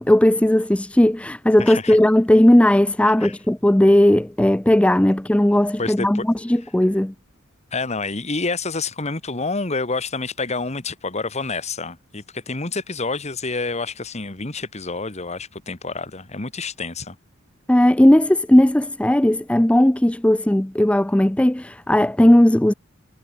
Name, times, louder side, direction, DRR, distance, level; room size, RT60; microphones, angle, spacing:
voice 1, 0.0-7.1 17.7-22.7, left 1 dB, 5° left, 0.4 m, -16 dB
voice 2, 1.6-2.0 3.2-3.3 5.8-6.2 7.7-17.1, left 3 dB, 30° left, 1.7 m, -28 dB
head